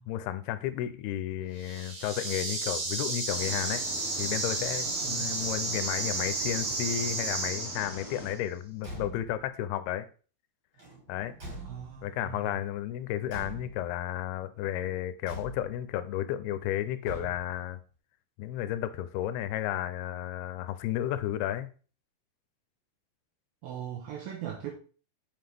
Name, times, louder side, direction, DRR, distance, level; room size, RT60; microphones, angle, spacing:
voice 1, 0.1-3.8 4.2-10.1 11.1-11.3 12.0-17.8 18.4-21.7, left 12 dB, 85° left, 2.6 m, -33 dB
sound 1, 1.6-8.3, right 3 dB, 55° right, 3.1 m, -33 dB
sound 2, 3.3-8.3, left 2 dB, 55° left, 1.9 m, -44 dB
voice 2, 5.0-5.3 11.6-12.4 23.6-24.7, right 9 dB, 75° right, 2.7 m, -39 dB
Car / Truck / Slam, 8.7-9.5 10.7-12.2 13.3-14.0 15.2-15.9 17.0-17.7, right 1 dB, 30° right, 3.2 m, -44 dB
7.7 x 5.7 x 3.5 m
omnidirectional pair, 4.4 m